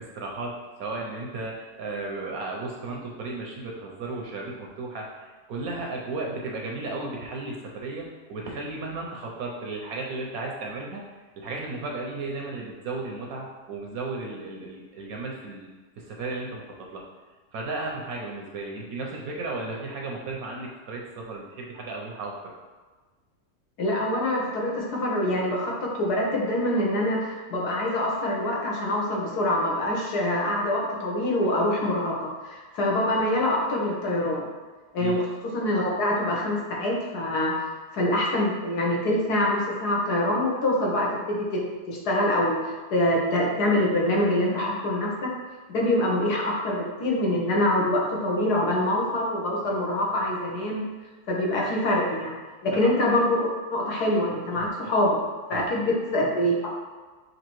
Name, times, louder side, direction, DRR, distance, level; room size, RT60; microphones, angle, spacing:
voice 1, 0.0-11.0 11.4-15.7 16.0-17.0 17.5-22.5 35.0-35.2 52.7-52.9 53.9-54.0 54.5-54.9 55.5-55.7, right 3 dB, 70° right, -1 dB, 1.0 m, -35 dB
voice 2, 23.8-34.5 34.9-35.2 35.5-37.5 37.9-41.6 41.9-45.3 45.7-50.8 51.3-52.4 52.6-55.2 55.5-56.7, left 1 dB, 70° left, -2 dB, 1.4 m, -25 dB
6.4 x 2.7 x 3.0 m, 1.3 s
omnidirectional pair, 1.8 m